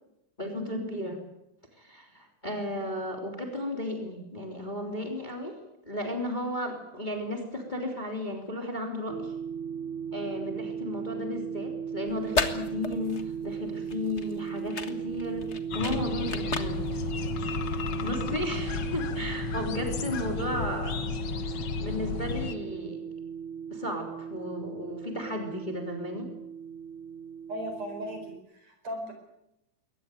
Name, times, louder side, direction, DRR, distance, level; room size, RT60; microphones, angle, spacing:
voice 1, 0.4-1.2 1.8-5.6 5.8-9.3 10.1-15.5 15.7-16.8 18.0-21.0 21.5-23.0 23.7-26.3, left 1 dB, 15° left, 3 dB, 3.2 m, -34 dB
sound 1, 9.1-28.4, right 7 dB, 80° right, 1.1 m, -37 dB
sound 2, 12.1-18.1, left 4 dB, 35° left, 1.0 m, -35 dB
sound 3, 15.7-22.5, left 6 dB, 55° left, 1.5 m, -33 dB
voice 2, 27.5-29.1, equal, 55° right, 5 dB, 5.9 m, -37 dB
22.0 x 18.5 x 9.2 m, 0.87 s
omnidirectional pair, 3.6 m